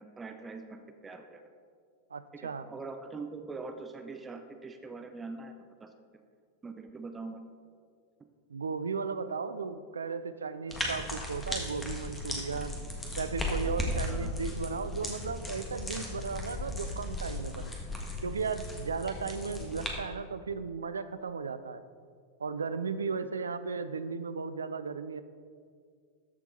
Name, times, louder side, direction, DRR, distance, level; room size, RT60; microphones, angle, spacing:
voice 1, 0.0-1.5 2.6-6.2 6.6-7.4 13.6-13.7 14.1-14.3, right 3 dB, 15° right, 6 dB, 0.5 m, -43 dB
voice 2, 2.1-2.7 8.5-12.8 13.2-17.7 18.2-21.8 22.4-25.2, right 5 dB, 75° right, 12 dB, 0.4 m, -35 dB
sound 1, 10.7-19.9, left 1 dB, 15° left, 1.4 m, -36 dB
13.5 x 4.5 x 4.1 m, 2.1 s
figure-of-eight pair, 90°, 0 cm